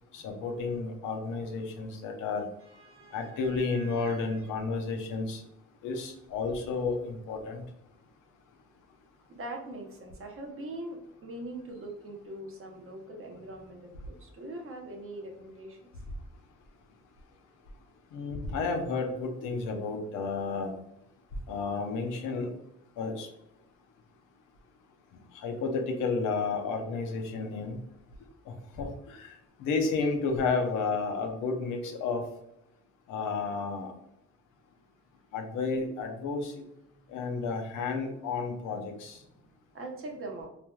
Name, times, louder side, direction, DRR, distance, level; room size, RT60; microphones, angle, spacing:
voice 1, 0.1-2.5 3.1-5.4 5.8-7.6 18.1-20.7 21.5-22.5 23.0-23.3 25.3-27.8 28.5-32.3 33.1-33.9 35.3-36.5 37.1-39.2, left 4 dB, 90° left, 4 dB, 0.6 m, -32 dB
voice 2, 2.6-4.4 9.3-15.9 39.7-40.5, right 1 dB, 45° right, 2 dB, 0.7 m, -42 dB
3.2 x 2.5 x 2.2 m, 0.81 s
cardioid pair, 90°, 30 cm